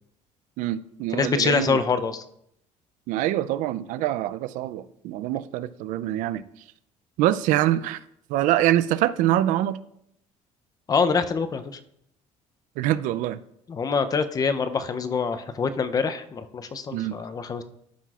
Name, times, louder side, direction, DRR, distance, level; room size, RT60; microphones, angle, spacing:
voice 1, 0.6-1.8 3.1-6.4 7.2-8.0 8.3-9.8 12.8-13.4 16.9-17.2, right 13 dB, 75° right, 14 dB, 0.4 m, -24 dB
voice 2, 1.1-2.2 10.9-11.8 13.7-17.6, left 5 dB, 30° left, 10 dB, 0.5 m, -25 dB
12.5 x 5.9 x 2.4 m, 0.74 s
cardioid pair, 130°, 13 cm